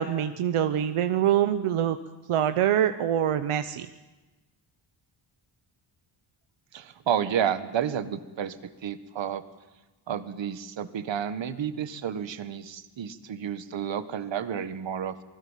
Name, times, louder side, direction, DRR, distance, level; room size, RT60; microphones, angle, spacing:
voice 1, 0.0-2.0 2.3-3.9, right 10 dB, 80° right, 9 dB, 1.1 m, -24 dB
voice 2, 6.7-8.6 8.8-9.4 10.1-15.2, right 8 dB, 60° right, 11 dB, 1.7 m, -31 dB
27.5 x 21.0 x 7.4 m, 1.2 s
wide cardioid pair, 150°, 50 cm